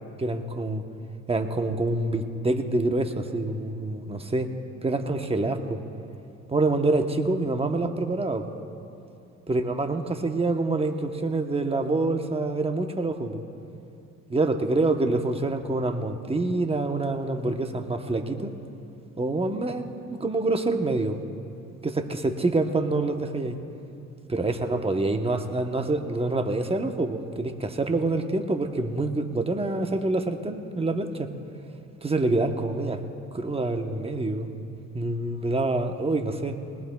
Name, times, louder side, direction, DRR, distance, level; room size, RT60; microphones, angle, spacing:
voice 1, 0.2-0.8 1.3-4.5 4.8-5.8 6.5-8.5 9.5-13.4 14.3-18.6 19.2-19.9 20.2-21.2 21.8-23.6 24.3-31.3 32.0-33.0 33.3-34.5 34.9-36.8, right 2 dB, 20° right, 5 dB, 1.0 m, -26 dB
21.0 x 19.5 x 2.3 m, 2.6 s
cardioid pair, 90°, 30 cm